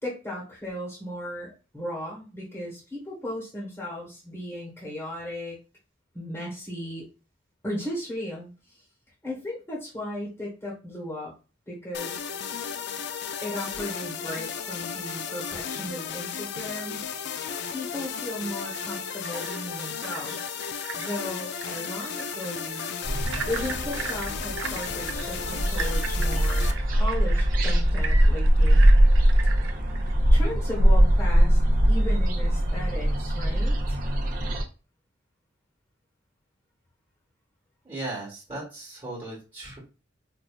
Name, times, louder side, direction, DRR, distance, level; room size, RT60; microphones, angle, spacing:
voice 1, 0.0-5.6 6.1-7.0 7.6-8.8 9.2-11.3 11.7-12.3 13.4-17.1 17.7-20.6 20.9-22.9 23.5-28.8 30.3-31.6 31.9-34.0, left 1 dB, 15° left, -4 dB, 1.2 m, -36 dB
sound 1, 11.9-26.7, left 7 dB, 60° left, 0.4 m, -34 dB
sound 2, 18.6-30.1, right 6 dB, 85° right, 0.5 m, -39 dB
sound 3, 23.0-34.6, equal, 45° right, 0.8 m, -21 dB
voice 2, 37.8-39.8, right 2 dB, 25° right, -6 dB, 1.4 m, -37 dB
4.5 x 2.6 x 2.3 m, 0.32 s
head